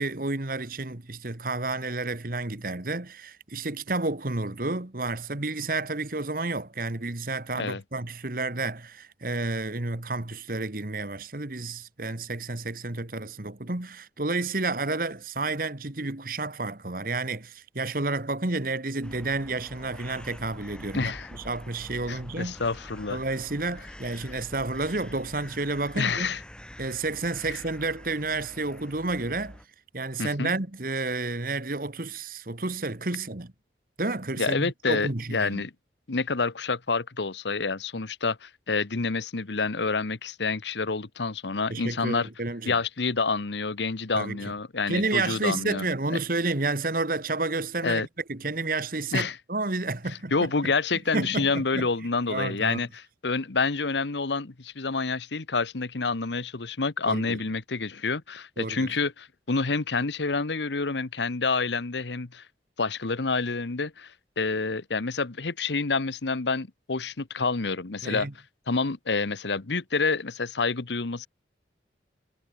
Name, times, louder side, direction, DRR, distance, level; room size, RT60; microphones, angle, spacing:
voice 1, 0.0-22.6 23.1-26.3 26.8-29.6 29.9-33.5 34.0-35.6 41.7-42.8 44.1-44.4 44.9-50.7 51.1-51.9 52.3-52.8 57.1-57.4 58.6-58.9 68.0-68.3, right 3 dB, 50° right, 1.7 m, -30 dB
sound 1, 19.0-29.6, equal, 5° left, 4.8 m, -46 dB
voice 2, 20.9-21.3 22.1-23.2 25.9-26.4 27.5-27.6 30.2-30.5 34.4-35.7 36.1-42.3 42.7-45.9 47.8-48.1 49.1-49.4 50.3-62.4 62.8-68.3 68.7-71.3, left 4 dB, 80° left, 1.1 m, -28 dB
head